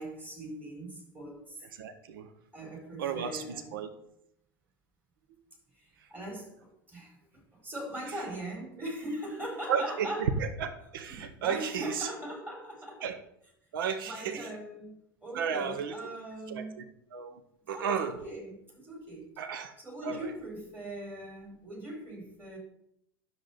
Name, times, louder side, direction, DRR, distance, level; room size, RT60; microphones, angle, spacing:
voice 1, 0.0-1.6 2.5-3.7 5.7-10.3 11.1-13.1 14.0-16.9 17.7-19.3 19.8-22.6, right 1 dB, 15° right, -1 dB, 4.3 m, -41 dB
voice 2, 1.8-2.3 3.0-3.4 3.7-3.9 9.7-12.1 13.0-13.2 13.7-14.5 15.3-15.9 16.5-16.8 17.1-17.4 17.7-18.1 19.4-19.7 20.0-20.3, right 7 dB, 60° right, 8 dB, 0.9 m, -33 dB
9.8 x 6.9 x 4.3 m, 0.75 s
figure-of-eight pair, 80°, 13 cm